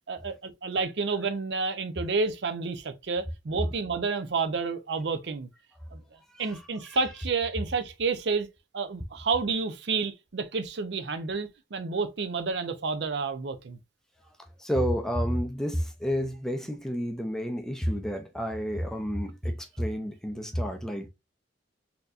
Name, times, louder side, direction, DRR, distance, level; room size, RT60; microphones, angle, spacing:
voice 1, 0.1-5.5 5.9-6.0 6.4-8.5 8.7-13.8, right 4 dB, 65° right, 0.6 m, -30 dB
voice 2, 6.3-7.0 14.6-21.1, equal, 5° left, 0.4 m, -30 dB
4.3 x 2.7 x 2.5 m
head